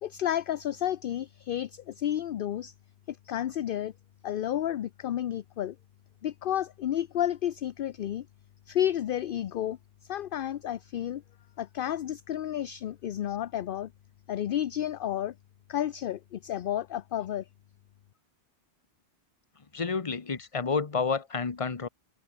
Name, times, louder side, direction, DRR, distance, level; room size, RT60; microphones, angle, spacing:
voice 1, 0.0-2.7 3.1-3.9 4.2-5.8 6.2-8.3 8.7-11.2 11.6-13.9 14.3-15.3 15.7-17.5, left 11 dB, 60° left, 0.7 m, -31 dB
voice 2, 19.7-21.9, left 5 dB, 30° left, 1.1 m, -30 dB
omnidirectional pair, 1.1 m